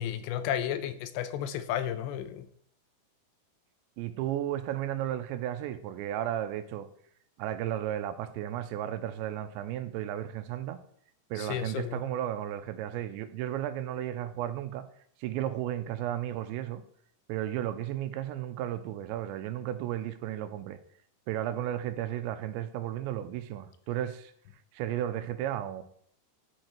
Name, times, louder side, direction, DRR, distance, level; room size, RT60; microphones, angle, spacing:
voice 1, 0.0-2.5 11.4-12.0, left 10 dB, 85° left, 2.9 m, -33 dB
voice 2, 4.0-6.9 7.4-10.8 11.3-14.9 15.2-16.8 17.3-20.8 21.3-24.3 24.7-25.8, right 12 dB, 85° right, 3.0 m, -34 dB
11.0 x 7.8 x 4.5 m
omnidirectional pair, 5.1 m